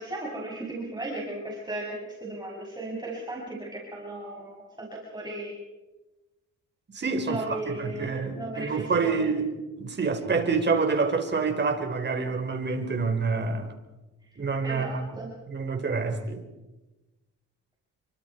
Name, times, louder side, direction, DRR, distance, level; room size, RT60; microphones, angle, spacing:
voice 1, 0.0-5.5 7.2-9.3 14.6-15.3, right 2 dB, 15° right, -3 dB, 6.4 m, -36 dB
voice 2, 6.9-9.5 9.8-13.7 14.4-15.0 15.5-16.4, right 4 dB, 35° right, 5 dB, 4.7 m, -27 dB
29.5 x 24.5 x 4.7 m, 1.1 s
cardioid pair, 90°, 30 cm